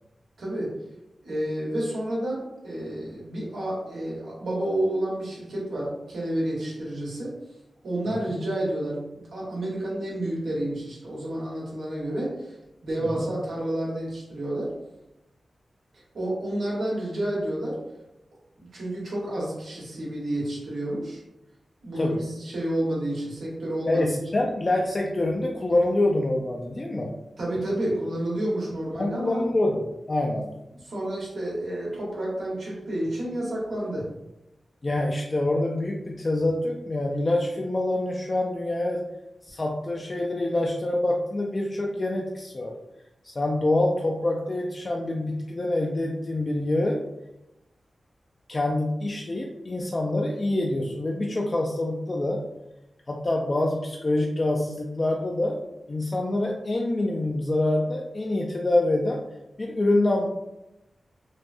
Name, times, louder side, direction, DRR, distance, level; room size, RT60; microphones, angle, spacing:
voice 1, 0.4-0.8 1.2-7.4 7.8-12.6 12.8-14.8 16.1-17.8 18.6-21.2 21.8-24.2 27.4-29.4 30.8-34.1, right 1 dB, 85° right, -5 dB, 1.1 m, -30 dB
voice 2, 23.9-27.1 28.9-30.5 34.8-39.0 39.4-42.7 43.2-47.0 48.5-52.4 53.1-55.6 55.9-59.2 59.6-60.3, left 1 dB, 35° left, -1 dB, 0.3 m, -26 dB
3.3 x 2.2 x 2.5 m, 0.93 s
wide cardioid pair, 95°, 0 cm